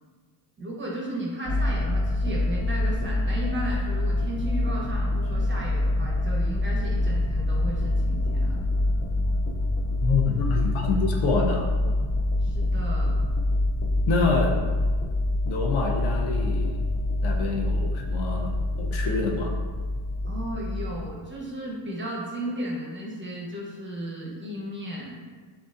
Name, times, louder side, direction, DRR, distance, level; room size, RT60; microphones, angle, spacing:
voice 1, 0.6-8.6 12.4-13.1 20.2-25.2, right 1 dB, 20° right, -3 dB, 1.1 m, -34 dB
sound 1, 1.5-21.1, left 1 dB, 30° left, 0.5 m, -26 dB
voice 2, 10.0-11.7 14.1-14.6 15.4-16.8 17.2-18.5 18.8-19.5, left 4 dB, 70° left, 0 dB, 0.9 m, -26 dB
6.2 x 2.8 x 2.6 m, 1.5 s
cardioid pair, 100°, 50 cm